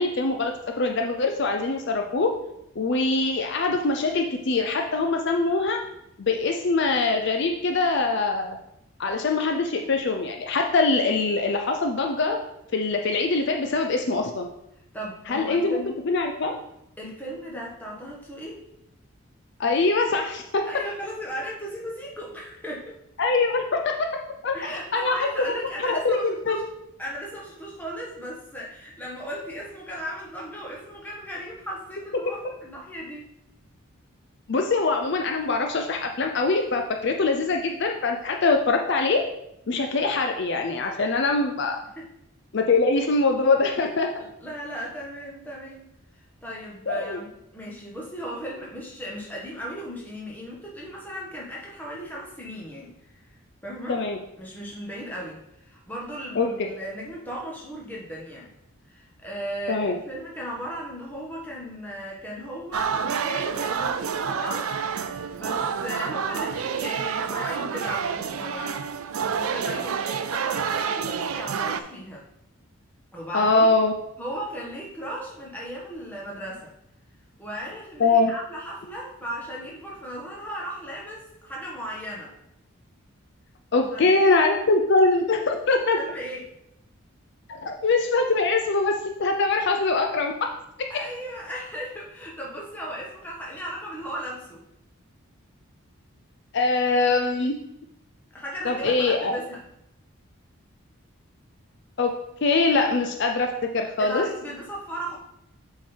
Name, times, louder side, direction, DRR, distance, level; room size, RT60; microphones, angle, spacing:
voice 1, 0.0-2.3 2.8-5.8 6.2-8.6 9.0-12.4 12.7-14.5 15.3-15.8 16.1-16.5 19.6-20.6 23.2-23.9 24.4-25.3 25.6-26.6 34.5-39.2 39.7-41.8 42.5-44.1 46.9-47.2 53.9-54.2 56.4-56.5 59.7-59.9 73.3-73.9 78.0-78.3 83.7-86.0 87.5-90.5 96.5-97.6 98.6-99.3 102.0-102.1 102.4-104.2, left 3 dB, 55° left, 4 dB, 0.5 m, -23 dB
voice 2, 14.9-16.0 17.0-18.6 20.6-22.9 24.5-26.7 27.0-33.3 41.9-42.1 44.2-45.8 46.4-52.9 53.6-54.0 54.4-58.5 58.9-64.7 65.0-72.2 73.1-73.7 74.2-76.7 77.4-82.3 83.7-84.3 85.9-86.5 90.9-94.6 98.3-99.6 104.0-105.2, equal, 10° left, -4 dB, 1.4 m, -36 dB
sound 1, 62.7-71.8, right 6 dB, 80° right, 0.4 m, -28 dB
7.3 x 3.8 x 4.4 m, 0.80 s
head